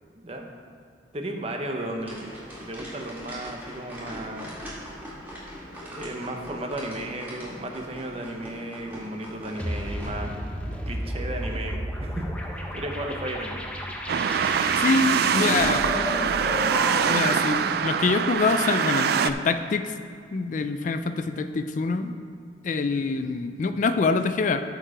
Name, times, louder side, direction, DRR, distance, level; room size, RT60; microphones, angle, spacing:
voice 1, 0.1-0.5 1.1-2.3 2.6-4.5 5.8-10.3 10.8-12.3 12.5-13.7 15.1-16.7, right 1 dB, 35° right, 2 dB, 0.9 m, -34 dB
sound 1, 2.0-10.1, equal, 10° right, 2.4 m, -41 dB
sound 2, 9.6-17.4, equal, 5° left, 0.7 m, -32 dB
sound 3, 14.1-19.3, right 7 dB, 60° right, 0.3 m, -24 dB
voice 2, 14.8-15.8 17.0-19.9 20.3-22.1 22.6-24.6, left 4 dB, 45° left, 9 dB, 0.4 m, -25 dB
13.0 x 4.6 x 5.0 m, 2.3 s
head